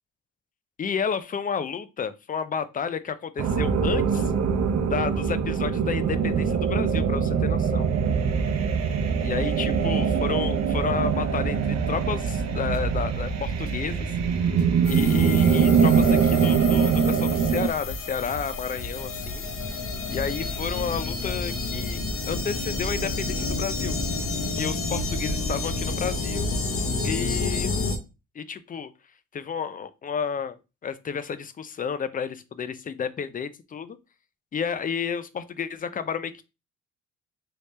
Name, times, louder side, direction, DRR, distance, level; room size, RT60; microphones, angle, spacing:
voice 1, 0.8-4.3 4.9-7.9 9.2-14.1 14.9-19.4 20.1-22.0 22.3-24.0 24.5-26.5 27.0-27.7 28.4-28.9 29.3-30.6 30.8-34.0 34.5-36.4, left 7 dB, 30° left, 13 dB, 0.4 m, -31 dB
sound 1, 3.4-17.7, right 6 dB, 60° right, 0.7 m, -23 dB
sound 2, 12.3-19.5, left 2 dB, 80° left, 1.0 m, -40 dB
sound 3, 14.8-28.0, left 3 dB, 45° left, 0.7 m, -30 dB
3.1 x 2.8 x 3.2 m, 0.28 s
cardioid pair, 90°, 30 cm